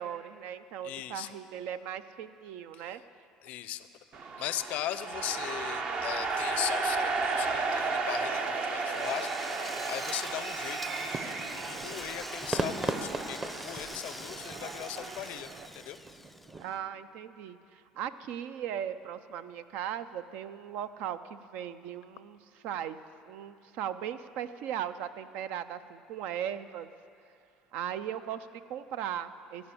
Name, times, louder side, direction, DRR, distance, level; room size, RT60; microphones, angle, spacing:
voice 1, 0.0-3.0 16.6-22.4 22.6-23.0 23.2-26.9 27.7-29.7, right 9 dB, 70° right, 13 dB, 0.5 m, -38 dB
voice 2, 0.8-1.3 2.7-3.0 3.4-3.9 4.4-16.0, left 13 dB, 65° left, 14 dB, 0.5 m, -39 dB
sound 1, 4.1-15.7, right 4 dB, 50° right, 0.9 m, -34 dB
Drill, 8.9-16.7, left 1 dB, 5° left, 0.3 m, -45 dB
sound 2, 11.0-16.6, right 3 dB, 25° right, 0.8 m, -38 dB
14.5 x 5.2 x 8.4 m, 2.5 s
hypercardioid pair, 80°, 3 cm